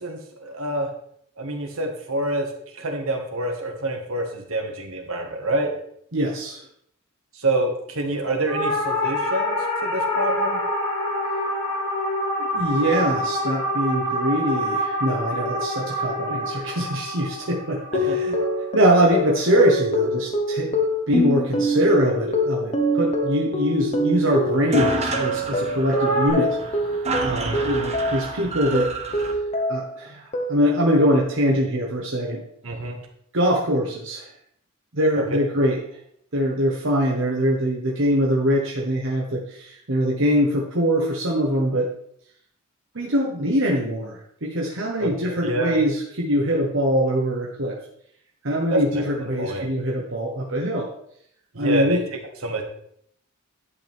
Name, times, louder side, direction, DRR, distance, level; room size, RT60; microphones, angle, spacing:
voice 1, 0.0-0.9 1.4-5.7 7.3-10.6 17.9-18.2 27.3-27.7 32.6-33.0 35.2-35.3 45.0-45.8 48.7-49.0 49.4-49.7 51.5-52.0 52.4-52.6, right 1 dB, 80° right, 3 dB, 1.9 m, -27 dB
voice 2, 6.1-6.6 12.4-18.4 18.7-20.7 21.1-26.6 27.2-28.9 29.7-32.4 33.3-34.3 34.9-35.8 36.3-41.9 42.9-47.8 48.4-50.9 51.6-52.0, equal, 60° right, -2 dB, 1.4 m, -23 dB
sound 1, 8.5-19.0 25.9-26.3, left 1 dB, 10° left, 4.0 m, -26 dB
sound 2, 17.9-28.4 28.7-30.0 30.3-30.9, equal, 30° left, 1.3 m, -25 dB
sound 3, 24.3-24.4 24.5-29.3, right 3 dB, 30° right, 1.2 m, -30 dB
11.0 x 8.3 x 3.6 m, 0.69 s
head